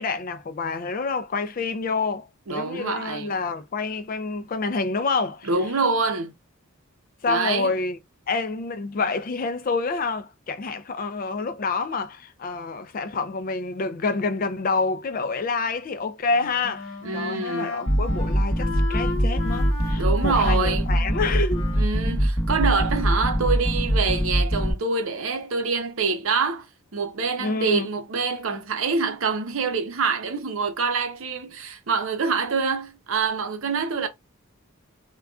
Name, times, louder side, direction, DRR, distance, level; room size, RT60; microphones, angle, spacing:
voice 1, 0.0-5.5 7.2-8.0 8.3-21.7 27.4-27.9, left 4 dB, 40° left, 0.3 m, -28 dB
voice 2, 2.5-3.3 5.5-6.3 7.3-7.7 17.0-17.7 20.0-20.9 21.8-26.7 26.9-34.1, right 4 dB, 65° right, 0.6 m, -26 dB
Wind instrument woodwind instrument, 16.3-21.9, left 4 dB, 55° left, 1.1 m, -36 dB
sound 1, 17.9-24.7, equal, 10° left, 0.7 m, -23 dB
3.5 x 2.3 x 2.4 m
head